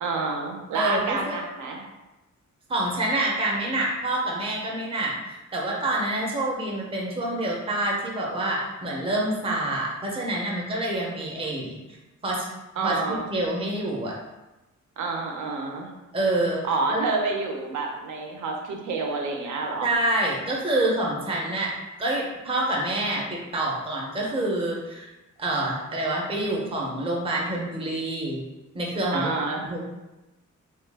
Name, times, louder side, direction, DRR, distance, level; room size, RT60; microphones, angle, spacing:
voice 1, 0.0-1.8 12.8-13.3 15.0-15.9 16.6-19.9 29.1-29.7, right 3 dB, 80° right, 1 dB, 0.7 m, -28 dB
voice 2, 0.7-1.4 2.7-5.1 5.5-11.8 12.2-12.5 12.8-14.2 16.1-16.6 16.9-17.0 19.8-25.1 25.4-28.4 28.7-29.8, right 1 dB, 20° right, -3 dB, 0.6 m, -27 dB
3.1 x 2.3 x 3.3 m, 1.0 s
wide cardioid pair, 160°, 30 cm